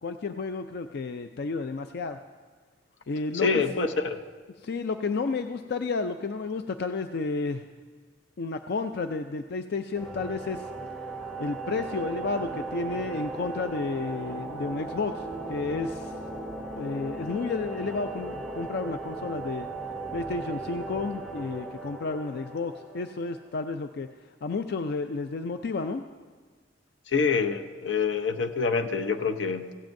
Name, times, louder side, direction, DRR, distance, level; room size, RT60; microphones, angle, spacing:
voice 1, 0.0-2.2 3.1-3.6 4.6-7.6 8.4-10.7 11.4-15.2 15.5-16.1 16.7-19.7 20.1-24.1 24.4-26.1, left 4 dB, 60° left, 8 dB, 0.4 m, -31 dB
voice 2, 3.3-4.2 27.1-29.7, left 5 dB, 85° left, 7 dB, 0.8 m, -26 dB
sound 1, 10.0-23.5, right 2 dB, ahead, 0.8 m, -37 dB
16.5 x 15.5 x 2.6 m, 1.5 s
head